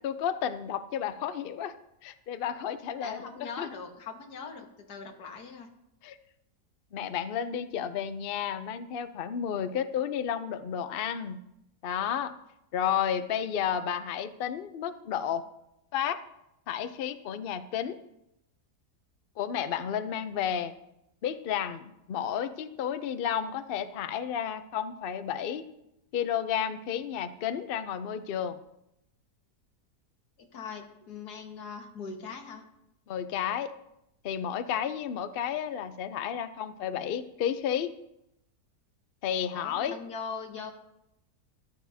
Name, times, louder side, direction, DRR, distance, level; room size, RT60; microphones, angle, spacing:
voice 1, 0.0-1.7 2.0-3.7 6.0-6.2 6.9-11.4 11.8-12.3 12.7-15.4 15.9-16.2 16.7-18.0 19.4-20.7 21.2-25.6 26.1-28.6 33.1-33.7 34.2-37.9 39.2-39.9, left 9 dB, 90° left, 10 dB, 0.5 m, -32 dB
voice 2, 3.0-5.7 30.4-32.6 39.5-40.7, left 5 dB, 70° left, 3 dB, 1.8 m, -41 dB
14.0 x 11.5 x 2.7 m, 0.83 s
omnidirectional pair, 1.8 m